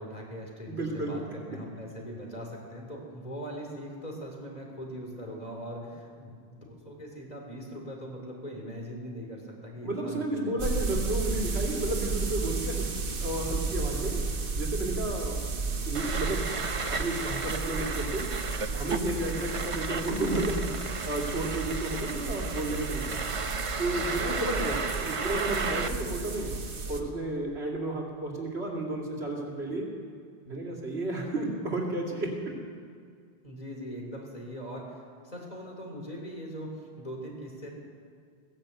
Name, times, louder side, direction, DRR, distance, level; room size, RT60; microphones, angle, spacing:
voice 1, 0.0-11.1 33.4-37.7, equal, 40° left, 0 dB, 3.2 m, -41 dB
voice 2, 0.7-1.1 9.8-12.9 13.2-14.2 14.6-15.5 15.8-16.5 16.9-18.3 18.6-23.2 23.8-26.5 26.9-29.9 30.5-32.4, right 2 dB, 80° right, -2 dB, 2.7 m, -32 dB
sound 1, 10.6-27.0, right 3 dB, 60° right, 1.2 m, -33 dB
sound 2, 15.9-25.9, right 4 dB, 35° right, 0.7 m, -34 dB
16.5 x 10.5 x 8.0 m, 2.1 s
omnidirectional pair, 1.1 m